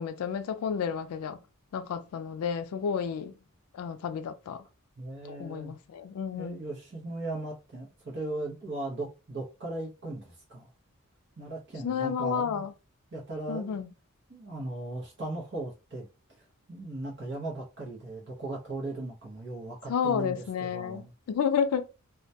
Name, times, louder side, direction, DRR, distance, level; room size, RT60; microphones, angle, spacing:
voice 1, 0.0-1.4 1.7-3.3 3.7-4.6 5.2-6.6 11.8-12.7 13.5-13.9 19.9-21.9, left 7 dB, 90° left, 0.3 m, -31 dB
voice 2, 5.0-5.7 6.3-10.7 11.4-12.7 13.1-13.8 14.3-16.1 16.4-21.1, right 2 dB, 50° right, 0.6 m, -38 dB
2.2 x 2.1 x 2.7 m
head